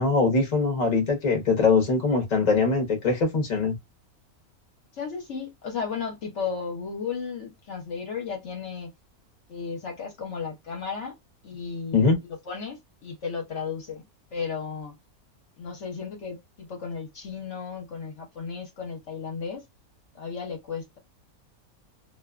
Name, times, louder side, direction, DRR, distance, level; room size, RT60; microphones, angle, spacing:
voice 1, 0.0-3.8 11.9-12.2, left 4 dB, 35° left, 0.7 m, -22 dB
voice 2, 4.9-8.9 9.5-11.1 11.4-14.0 14.3-15.0 15.6-19.6 20.1-21.0, left 5 dB, 60° left, 0.9 m, -34 dB
2.5 x 2.2 x 2.3 m
omnidirectional pair, 1.6 m